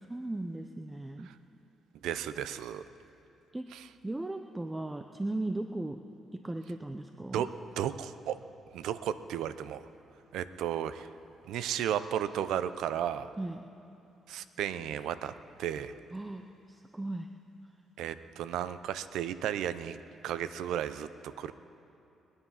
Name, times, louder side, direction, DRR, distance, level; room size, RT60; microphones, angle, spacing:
voice 1, 0.1-1.3 3.5-3.7 4.0-6.0 6.3-7.5 13.4-13.6 16.1-16.4 16.7-17.3, right 2 dB, 15° right, 6 dB, 0.6 m, -37 dB
voice 2, 2.0-2.8 3.7-3.9 7.3-7.5 7.8-8.3 8.7-9.8 10.3-11.1 11.5-13.3 14.3-15.3 15.6-16.0 18.0-20.0 20.2-21.5, right 10 dB, 85° right, 13 dB, 0.6 m, -34 dB
22.0 x 9.7 x 5.7 m, 2.7 s
cardioid pair, 90°, 0 cm